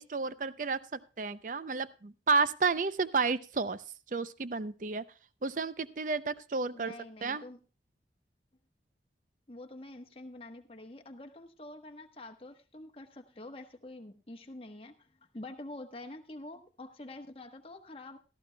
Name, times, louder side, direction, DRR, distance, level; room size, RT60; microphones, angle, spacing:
voice 1, 0.0-3.8 4.1-5.0 5.4-6.9 7.2-7.4, right 4 dB, 45° right, 15 dB, 0.5 m, -31 dB
voice 2, 6.7-7.6 9.5-15.1 15.3-18.2, left 2 dB, 30° left, 5 dB, 1.1 m, -47 dB
18.0 x 13.5 x 2.2 m, 0.33 s
head